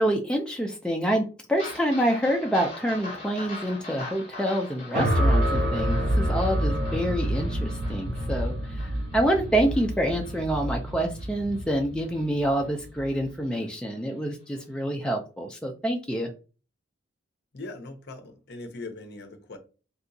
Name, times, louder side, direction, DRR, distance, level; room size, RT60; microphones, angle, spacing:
voice 1, 0.0-16.3, right 1 dB, 5° left, 0.3 m, -27 dB
sound 1, 1.5-12.2 12.6-12.7 13.1-13.2 13.6-13.7, left 2 dB, 35° left, 1.7 m, -43 dB
sound 2, 4.9-13.2, equal, 45° right, 0.5 m, -27 dB
voice 2, 17.5-19.6, left 2 dB, 55° left, 0.6 m, -40 dB
3.3 x 2.8 x 2.6 m
head